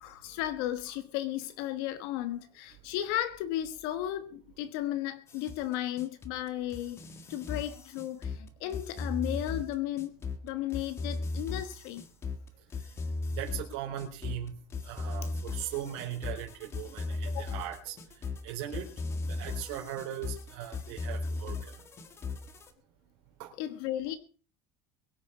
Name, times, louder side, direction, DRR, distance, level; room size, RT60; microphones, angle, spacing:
voice 1, 0.0-7.0 7.3-10.1 10.4-12.0 17.3-17.6 23.6-24.2, left 13 dB, 75° left, 1.3 m, -34 dB
sound 1, 5.3-22.7, left 3 dB, 20° left, 1.7 m, -37 dB
voice 2, 13.3-14.5 14.8-18.0 18.4-18.9 19.3-21.8 23.4-23.5, right 11 dB, 90° right, 4.0 m, -39 dB
22.5 x 9.1 x 5.0 m
cardioid pair, 175°, 13 cm